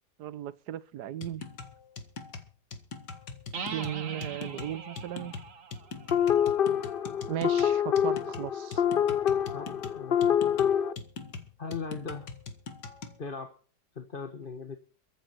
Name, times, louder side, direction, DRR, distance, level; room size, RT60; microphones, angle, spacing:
voice 1, 0.2-1.4 3.7-5.3 7.3-8.8, right 11 dB, 75° right, 1.4 m, -36 dB
sound 1, 1.2-13.2, left 4 dB, 80° left, 2.3 m, -42 dB
sound 2, 3.5-7.2, right 5 dB, 50° right, 1.7 m, -42 dB
sound 3, 6.1-10.9, left 9 dB, 50° left, 0.6 m, -26 dB
voice 2, 9.5-10.4 11.6-12.3 13.2-13.5 14.0-14.8, left 5 dB, 35° left, 1.4 m, -39 dB
23.0 x 8.8 x 4.5 m
omnidirectional pair, 1.8 m